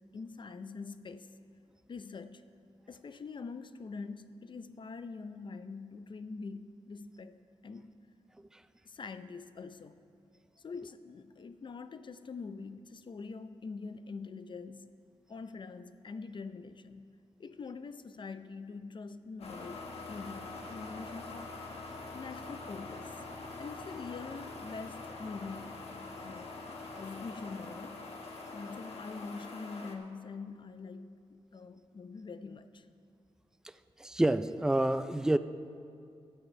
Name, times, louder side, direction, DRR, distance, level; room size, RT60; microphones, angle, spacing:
voice 1, 0.1-1.3 1.9-2.5 2.9-7.4 7.6-7.9 8.8-10.0 10.6-14.9 15.3-17.1 17.4-21.6 22.1-23.1 23.6-25.8 26.2-26.6 26.9-28.0 28.5-32.9, left 4 dB, 50° left, 11 dB, 0.6 m, -44 dB
sound 1, 19.4-30.0, left 3 dB, 65° left, 1.2 m, -44 dB
voice 2, 34.0-35.4, right 1 dB, 5° right, 12 dB, 0.4 m, -28 dB
12.0 x 8.4 x 5.4 m, 2.4 s
cardioid pair, 80°, 11 cm